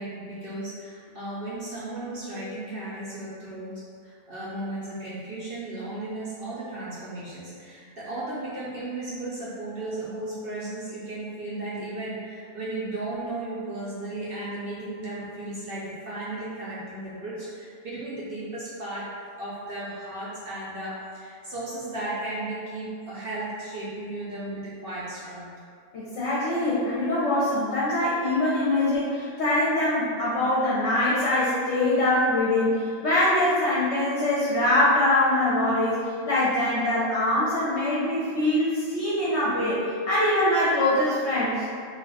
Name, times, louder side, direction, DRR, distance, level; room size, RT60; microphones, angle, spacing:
voice 1, 0.0-19.1 19.4-25.5, right 2 dB, 60° right, -8 dB, 0.6 m, -35 dB
voice 2, 25.9-41.7, left 1 dB, 60° left, -9 dB, 0.8 m, -23 dB
2.4 x 2.3 x 3.8 m, 2.2 s
omnidirectional pair, 1.5 m